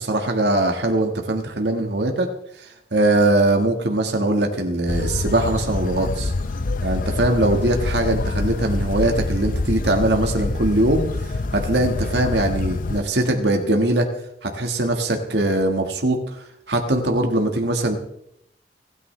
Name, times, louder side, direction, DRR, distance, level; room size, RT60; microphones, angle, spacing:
voice 1, 0.0-2.3 2.6-6.3 6.8-11.0 11.5-14.1 14.4-18.0, right 1 dB, 70° right, 3 dB, 1.6 m, -21 dB
sound 1, 4.9-13.0, left 3 dB, 50° left, 0.5 m, -26 dB
29.0 x 9.8 x 3.3 m, 0.76 s
head